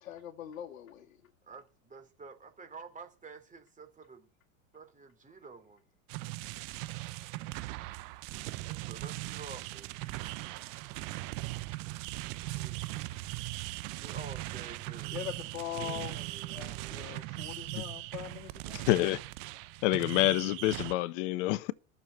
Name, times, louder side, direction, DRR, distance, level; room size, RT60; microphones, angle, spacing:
voice 1, 0.0-1.2 15.1-16.2 16.5-18.9, left 11 dB, 75° left, 1.9 m, -42 dB
voice 2, 1.4-4.3 4.7-5.9 8.7-10.3 12.5-13.2 14.0-15.2 15.8-17.2, right 4 dB, 20° right, 3.3 m, -50 dB
sound 1, 6.1-20.9, right 20 dB, 50° right, 0.9 m, -39 dB
voice 3, 18.9-19.2 19.8-21.7, left 17 dB, 60° left, 1.2 m, -27 dB
12.5 x 7.1 x 9.3 m
hypercardioid pair, 95°, 41 cm